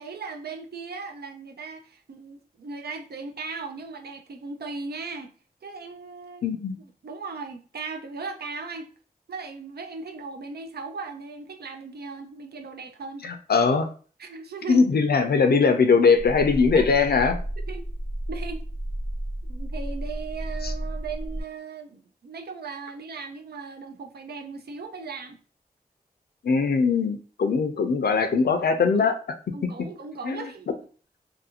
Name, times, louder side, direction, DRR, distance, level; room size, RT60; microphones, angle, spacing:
voice 1, 0.0-5.3 5.6-6.5 6.8-8.9 9.3-13.2 14.2-14.9 16.6-16.9 17.7-17.9 18.3-18.7 19.4-25.4 28.9-29.1 29.5-30.7, right 4 dB, 90° right, 0.5 m, -37 dB
voice 2, 6.4-6.8 13.2-13.9 14.7-17.4 20.6-20.7 26.4-29.2 30.2-30.5, left 5 dB, 85° left, 0.4 m, -21 dB
sound 1, 16.2-21.4, right 1 dB, 50° right, 0.9 m, -32 dB
2.6 x 2.5 x 2.8 m
wide cardioid pair, 65°, 16 cm